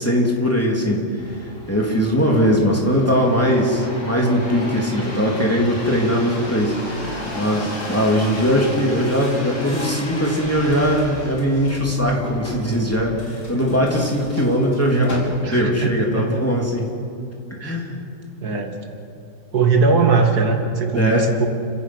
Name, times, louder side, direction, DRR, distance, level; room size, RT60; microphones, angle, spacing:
voice 1, 0.0-1.4 1.7-16.9 17.6-18.0 20.9-21.3, equal, 10° left, -2 dB, 3.1 m, -20 dB
sound 1, 1.2-15.7 16.3-16.8, left 1 dB, 50° left, 4.2 m, -33 dB
voice 2, 15.4-16.4 17.6-17.8 18.4-18.8 19.5-21.5, right 4 dB, 75° right, 4 dB, 2.3 m, -20 dB
29.5 x 16.0 x 6.2 m, 2.6 s
omnidirectional pair, 1.7 m